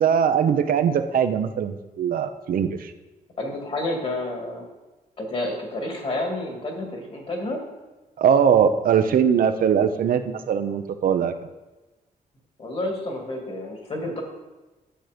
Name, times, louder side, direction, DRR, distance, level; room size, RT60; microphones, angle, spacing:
voice 1, 0.0-2.9 8.2-11.3, right 8 dB, 75° right, 8 dB, 0.7 m, -21 dB
voice 2, 3.4-4.6 5.2-7.6 12.6-14.2, left 1 dB, 40° left, 2 dB, 2.3 m, -29 dB
10.0 x 7.7 x 5.2 m, 1.1 s
wide cardioid pair, 140°, 15 cm